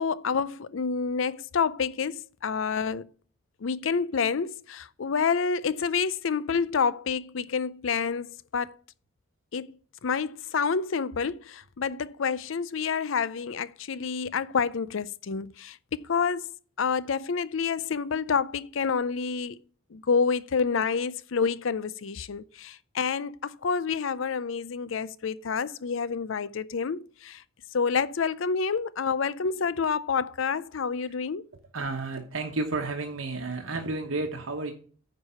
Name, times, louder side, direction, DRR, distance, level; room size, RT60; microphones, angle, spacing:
voice 1, 0.0-3.0 3.6-8.7 9.5-9.7 10.0-16.5 16.8-19.6 19.9-27.4 27.7-31.4, left 5 dB, 75° left, 0.5 m, -28 dB
voice 2, 31.7-34.7, right 3 dB, 80° right, 1.1 m, -31 dB
9.5 x 4.7 x 5.6 m
head